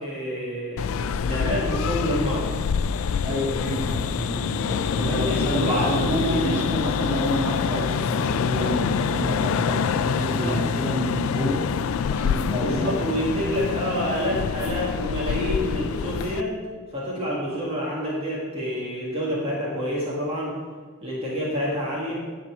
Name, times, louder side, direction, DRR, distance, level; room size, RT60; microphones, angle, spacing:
voice 1, 0.0-2.5 4.9-6.5 7.1-7.2 10.2-10.6 12.6-16.6 16.9-20.6 21.0-22.1, equal, 25° right, -6 dB, 1.8 m, -28 dB
sound 1, 0.8-16.4, left 6 dB, 65° left, 0.3 m, -26 dB
voice 2, 3.2-11.7 12.1-13.0, equal, 10° right, -6 dB, 1.9 m, -29 dB
10.0 x 4.4 x 7.4 m, 1.5 s
head